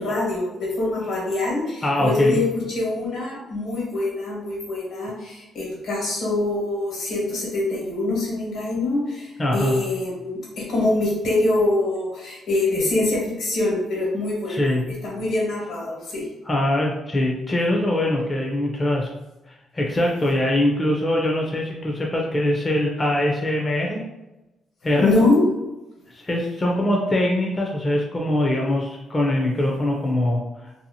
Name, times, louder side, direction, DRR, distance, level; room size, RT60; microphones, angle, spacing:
voice 1, 0.0-14.7 15.0-16.3 25.0-25.4, left 2 dB, 80° left, -4 dB, 1.3 m, -24 dB
voice 2, 1.8-2.4 9.4-9.8 14.5-14.9 16.5-19.1 19.5-24.0 24.8-25.1 26.1-30.7, left 1 dB, 25° left, -1 dB, 0.4 m, -22 dB
2.7 x 2.4 x 2.7 m, 0.99 s
cardioid pair, 110°, 0 cm